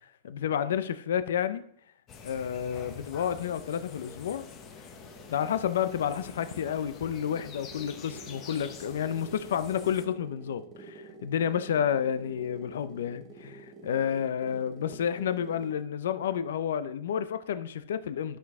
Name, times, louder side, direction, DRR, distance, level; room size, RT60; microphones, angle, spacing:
voice 1, 0.2-1.6 2.2-4.4 5.3-18.4, left 9 dB, 75° left, 0.6 m, -30 dB
sound 1, 2.1-10.1, left 6 dB, 20° left, 0.9 m, -47 dB
sound 2, 4.4-15.9, right 4 dB, 20° right, 0.9 m, -49 dB
12.5 x 6.2 x 3.6 m
supercardioid pair, 170°, 0 cm